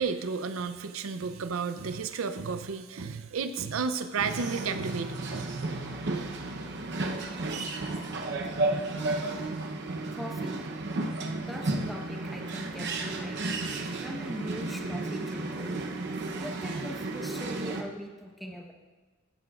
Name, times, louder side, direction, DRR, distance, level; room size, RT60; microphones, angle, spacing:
voice 1, 0.0-5.4, right 5 dB, 85° right, 10 dB, 0.5 m, -32 dB
sound 1, 4.2-17.8, right 2 dB, 60° right, 0.8 m, -33 dB
voice 2, 10.1-10.6 11.4-13.5 14.0-15.7 16.4-18.7, equal, ahead, 1 dB, 1.0 m, -41 dB
14.0 x 10.5 x 2.4 m, 1.3 s
head